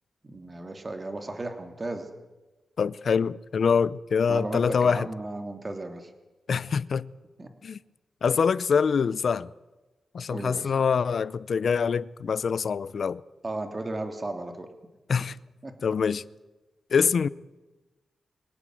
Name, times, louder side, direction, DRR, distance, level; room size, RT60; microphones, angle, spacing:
voice 1, 0.2-2.1 4.3-6.1 7.4-7.5 10.3-10.7 13.4-14.7 15.6-15.7, right 2 dB, 30° right, 2.7 m, -35 dB
voice 2, 2.8-5.1 6.5-7.1 7.6-7.8 8.2-9.5 10.1-13.2 15.1-15.4 15.8-16.2 16.9-17.3, left 6 dB, 65° left, 0.6 m, -25 dB
24.0 x 18.0 x 7.7 m
cardioid pair, 90°, 0 cm